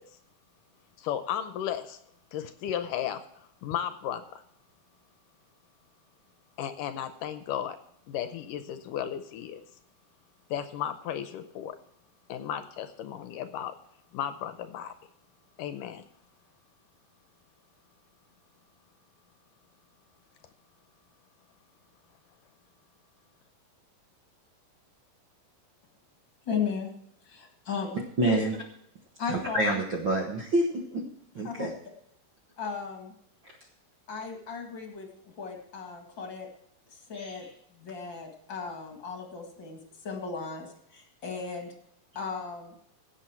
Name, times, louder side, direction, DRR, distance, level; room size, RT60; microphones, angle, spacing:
voice 1, 1.0-2.0 2.3-4.4 6.6-7.8 8.1-9.6 10.5-11.8 12.3-13.7 14.1-14.9 15.6-16.0, left 10 dB, 80° left, 10 dB, 2.2 m, -34 dB
voice 2, 26.5-26.9 27.2-27.9 28.3-28.4 29.2-29.6 31.4-31.7 32.6-33.1 34.1-36.5 36.9-37.5 37.7-41.7 42.2-42.7, left 5 dB, 40° left, 2 dB, 2.2 m, -36 dB
voice 3, 28.2-28.6 29.3-31.0 31.3-31.7 33.4-33.6 37.1-37.4, right 1 dB, 50° right, 0 dB, 1.5 m, -27 dB
16.5 x 8.2 x 4.5 m, 0.73 s
omnidirectional pair, 4.0 m